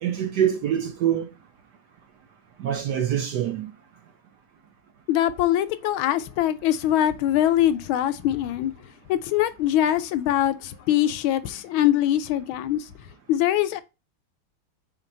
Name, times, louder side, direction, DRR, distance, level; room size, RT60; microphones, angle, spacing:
voice 1, 0.0-1.3 2.6-3.7, right 10 dB, 70° right, 1.1 m, -25 dB
voice 2, 5.1-8.7 9.1-12.8 13.3-13.8, left 12 dB, 75° left, 1.3 m, -23 dB
4.5 x 4.1 x 5.3 m
omnidirectional pair, 2.4 m